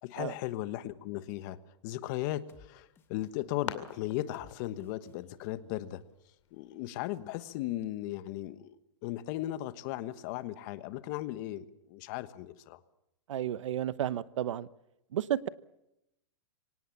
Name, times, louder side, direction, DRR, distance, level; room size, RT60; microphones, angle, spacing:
voice 1, 0.0-6.0 6.5-8.8 9.0-12.8, left 14 dB, 40° left, 13 dB, 1.3 m, -37 dB
sound 1, 2.0-2.7 2.9-3.3 3.9-4.5 4.8-5.2, left 7 dB, 15° left, 1.5 m, -59 dB
sound 2, 2.7-7.9, left 10 dB, 75° left, 2.5 m, -48 dB
voice 2, 13.3-14.7 15.1-15.5, right 11 dB, 75° right, 17 dB, 1.0 m, -32 dB
25.0 x 18.5 x 7.2 m, 0.84 s
supercardioid pair, 160°, 16 cm